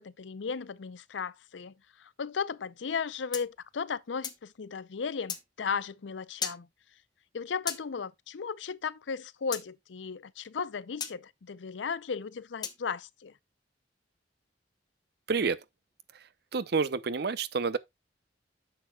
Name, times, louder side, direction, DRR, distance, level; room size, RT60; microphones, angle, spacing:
voice 1, 0.0-1.7 2.0-6.7 7.3-13.3, left 5 dB, 90° left, 0.5 m, -35 dB
sound 1, 3.3-4.5 5.3-5.4 6.4-6.6 7.7-7.8 9.5-9.7 11.0-11.2 12.6-12.8, left 6 dB, 25° left, 1.0 m, -36 dB
voice 2, 15.3-15.6 16.1-17.8, right 5 dB, 60° right, 0.6 m, -29 dB
10.0 x 6.9 x 2.3 m
head